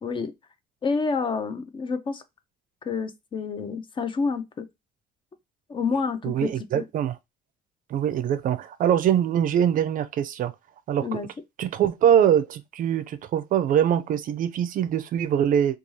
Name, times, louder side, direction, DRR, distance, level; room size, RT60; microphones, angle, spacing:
voice 1, 0.0-0.3 0.8-2.2 2.9-4.7 5.7-6.8 11.0-11.3, left 4 dB, 30° left, 0.4 m, -28 dB
voice 2, 6.2-7.2 7.9-10.5 10.9-11.2 11.6-15.8, right 9 dB, 55° right, 0.4 m, -23 dB
2.6 x 2.3 x 3.0 m
cardioid pair, 110°, 17 cm